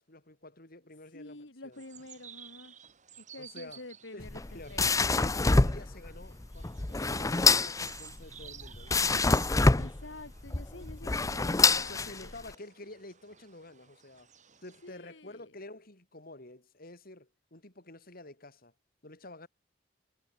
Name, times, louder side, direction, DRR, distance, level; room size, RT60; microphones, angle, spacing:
voice 1, 0.0-1.8 3.4-3.8 4.1-4.3 4.5-4.8 5.1-9.1 11.7-14.3 14.6-18.7 19.0-19.5, left 2 dB, 55° left, 6.1 m, -49 dB
voice 2, 1.1-2.7 3.2-5.0 9.8-12.3 14.8-15.5, left 2 dB, 85° left, 3.0 m, -48 dB
sound 1, 1.7-14.9, right 9 dB, 40° right, 4.8 m, -54 dB
sound 2, 4.2-12.5, left 3 dB, 20° left, 0.6 m, -26 dB
head